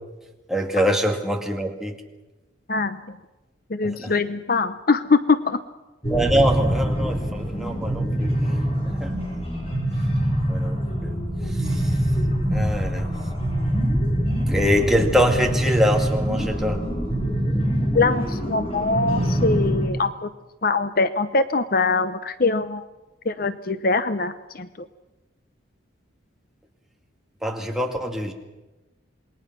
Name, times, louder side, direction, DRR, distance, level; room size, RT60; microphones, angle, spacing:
voice 1, 0.5-1.9 3.8-4.1 6.1-8.5 8.9-9.1 10.5-11.2 11.5-11.9 12.5-13.1 14.5-16.8 27.4-28.3, equal, ahead, 1 dB, 2.3 m, -24 dB
voice 2, 2.7-3.2 3.7-5.6 17.9-20.3 20.6-22.8 23.3-24.9, left 3 dB, 50° left, 12 dB, 0.8 m, -23 dB
sound 1, 6.0-19.9, equal, 30° left, 6.2 m, -24 dB
27.5 x 20.5 x 6.1 m, 1.1 s
head